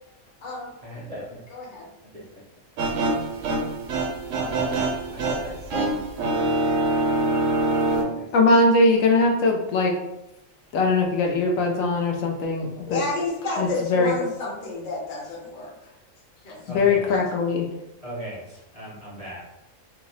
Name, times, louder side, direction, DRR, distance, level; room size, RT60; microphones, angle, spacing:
voice 1, 0.8-1.4 2.0-2.3 4.3-4.7 5.1-6.6 8.2-8.3 12.8-12.9 16.6-17.1 18.0-19.5, equal, 45° right, -4 dB, 0.4 m, -39 dB
voice 2, 1.5-1.9 12.9-15.9 16.4-16.6 17.1-17.2, left 3 dB, 45° left, -4 dB, 0.7 m, -30 dB
sound 1, 2.8-8.0, right 2 dB, 75° right, 0.9 m, -25 dB
voice 3, 8.3-10.0 10.7-13.0 13.6-14.1 16.7-17.7, left 2 dB, 85° left, 1 dB, 1.0 m, -21 dB
2.7 x 2.0 x 3.8 m, 0.89 s
omnidirectional pair, 1.4 m